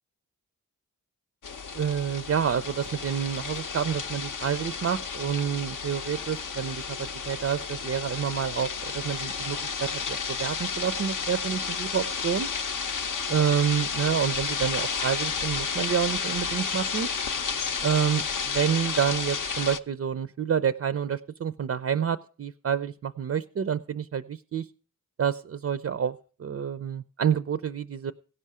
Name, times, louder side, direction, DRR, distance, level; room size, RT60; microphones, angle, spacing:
sound 1, 1.4-19.8, left 5 dB, 60° left, 0.6 m, -32 dB
voice 1, 1.7-12.5 13.3-17.1 17.8-24.7 25.2-28.1, right 8 dB, 45° right, 12 dB, 0.4 m, -28 dB
16.5 x 5.6 x 4.8 m, 0.39 s
cardioid pair, 60°, 35 cm